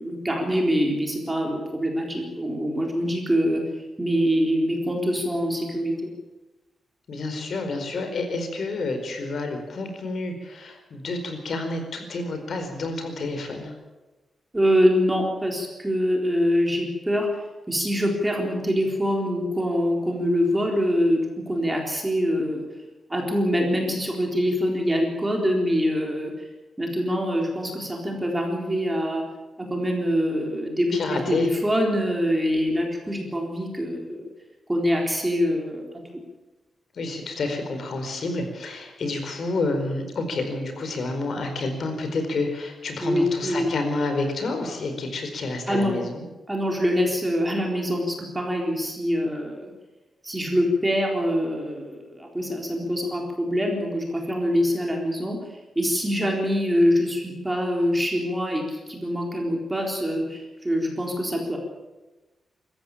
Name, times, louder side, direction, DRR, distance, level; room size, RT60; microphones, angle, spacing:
voice 1, 0.0-3.6 4.0-6.1 14.5-17.3 17.7-22.6 23.1-26.3 26.8-29.2 29.6-34.3 34.7-35.8 43.0-43.7 45.7-46.0 46.5-49.7 50.2-55.4 55.8-61.6, equal, 10° right, 0 dB, 3.9 m, -24 dB
voice 2, 7.1-13.7 30.9-31.5 36.9-46.2, left 3 dB, 55° left, 6 dB, 4.7 m, -29 dB
25.0 x 14.5 x 8.9 m, 1.1 s
wide cardioid pair, 155°, 0 cm